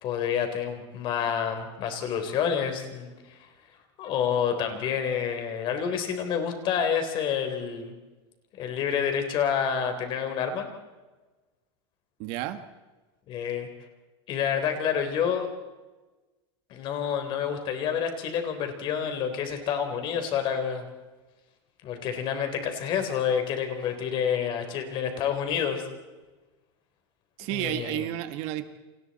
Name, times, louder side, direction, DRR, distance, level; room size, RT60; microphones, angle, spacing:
voice 1, 0.0-3.4 4.0-7.9 8.6-10.7 13.3-13.7 14.3-15.5 16.7-20.9 21.8-25.8 27.5-28.1, left 8 dB, 35° left, 6 dB, 3.7 m, -28 dB
voice 2, 12.2-12.6 27.4-28.7, right 13 dB, 45° right, 10 dB, 1.5 m, -31 dB
29.5 x 26.5 x 4.2 m, 1.2 s
supercardioid pair, 155°, 14 cm